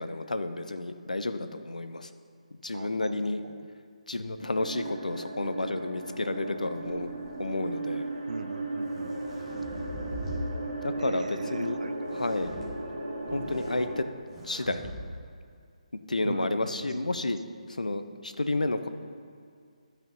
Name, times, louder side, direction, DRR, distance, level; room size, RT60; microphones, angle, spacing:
voice 1, 0.0-2.1 2.6-3.4 4.1-7.1 7.4-8.1 10.8-11.8 12.1-12.5 13.3-14.1 14.4-14.9 16.1-17.4 17.7-18.9, left 2 dB, 80° left, 9 dB, 0.7 m, -31 dB
voice 2, 2.7-3.1 8.3-9.1 9.5-9.7 11.0-12.3 16.2-16.5 16.8-17.2, right 3 dB, 70° right, 10 dB, 0.5 m, -41 dB
sound 1, 4.5-14.0, right 2 dB, 55° right, 2.2 m, -36 dB
sound 2, 6.9-7.7 8.6-10.5 12.0-12.7 13.1-13.9 14.3-15.0, right 1 dB, 15° right, 1.6 m, -41 dB
12.0 x 5.2 x 5.5 m, 2.3 s
figure-of-eight pair, 150°, 4 cm